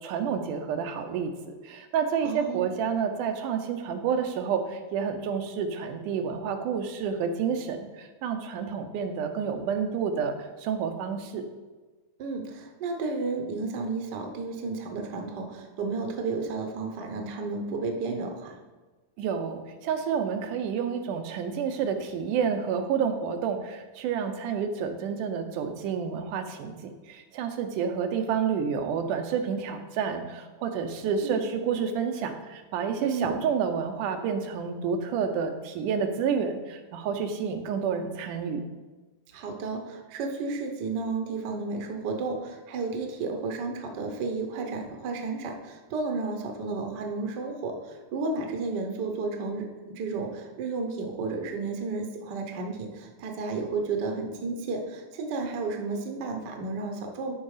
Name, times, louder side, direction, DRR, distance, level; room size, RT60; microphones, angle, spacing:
voice 1, 0.0-11.4 19.2-38.6, right 6 dB, 90° right, 6 dB, 2.4 m, -29 dB
voice 2, 2.2-2.7 12.2-18.6 31.2-31.4 33.0-33.3 39.3-57.3, right 3 dB, 65° right, 3 dB, 1.0 m, -32 dB
12.5 x 4.6 x 4.9 m, 1.3 s
omnidirectional pair, 3.5 m